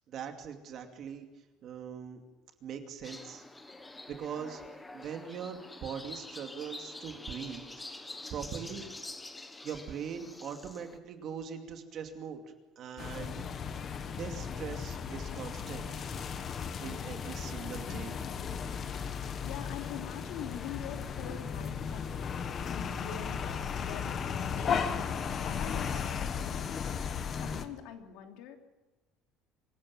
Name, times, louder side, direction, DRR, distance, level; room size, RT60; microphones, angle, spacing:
voice 1, 0.1-1.3 1.6-2.2 2.6-3.4 4.1-4.6 4.9-7.6 7.9-8.8 9.6-12.4 12.8-13.4 14.2-16.0 16.8-18.2, right 7 dB, 40° right, 5 dB, 2.5 m, -41 dB
sound 1, 3.0-11.0, left 2 dB, 10° left, 1.3 m, -46 dB
sound 2, 13.0-27.7, left 6 dB, 30° left, 1.3 m, -35 dB
voice 2, 19.4-22.4 22.7-25.1 25.4-26.7 27.4-28.6, left 9 dB, 70° left, 4 dB, 3.1 m, -44 dB
25.5 x 17.0 x 7.2 m, 1.1 s
cardioid pair, 175°, 0 cm